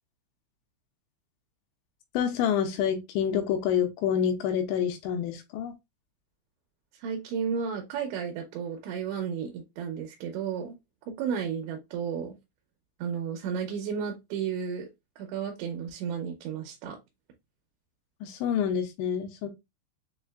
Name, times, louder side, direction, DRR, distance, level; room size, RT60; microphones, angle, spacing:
voice 1, 2.1-5.7 18.2-19.5, left 8 dB, 85° left, 3.0 m, -27 dB
voice 2, 7.0-10.8 11.2-12.4 13.0-14.9 15.2-17.0, right 7 dB, 80° right, 3.0 m, -33 dB
7.1 x 2.4 x 2.3 m
omnidirectional pair, 5.3 m